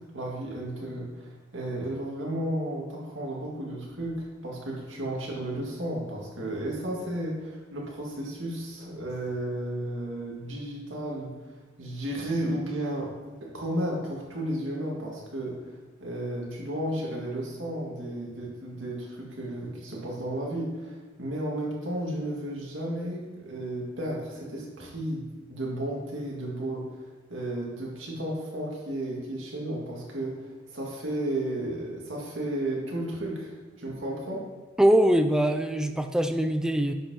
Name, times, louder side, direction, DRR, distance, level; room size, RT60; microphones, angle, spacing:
voice 1, 0.1-11.3 11.8-13.1 13.4-25.2 25.5-27.0 27.3-34.4, right 1 dB, 75° right, -3 dB, 1.9 m, -33 dB
voice 2, 34.8-36.9, equal, 5° right, 6 dB, 0.3 m, -22 dB
10.0 x 5.6 x 2.8 m, 1.3 s
head